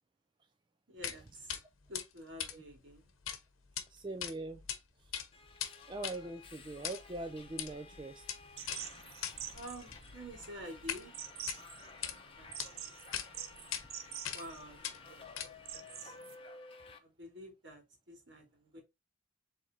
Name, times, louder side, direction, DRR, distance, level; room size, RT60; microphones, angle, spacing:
voice 1, 0.9-1.6 1.9-3.1 9.5-11.1 11.5-11.8 12.1-13.0 14.3-16.1 17.0-18.8, equal, 60° right, 2.5 m, -50 dB
sound 1, 1.0-1.2 1.5-1.6 1.9-3.4 3.7-3.8 4.2-4.8 5.0-11.0 11.4-12.2 12.6-12.7 13.1-13.3 13.7-13.8 14.2-14.5 14.8-15.8, left 9 dB, 90° left, 0.9 m, -41 dB
voice 2, 3.9-4.6 5.9-8.2, right 2 dB, 25° right, 0.4 m, -42 dB
Subway metro underground, 5.3-17.0, left 4 dB, 25° left, 0.8 m, -54 dB
sound 2, 8.6-16.4, right 10 dB, 90° right, 0.7 m, -47 dB
5.0 x 3.7 x 2.7 m
head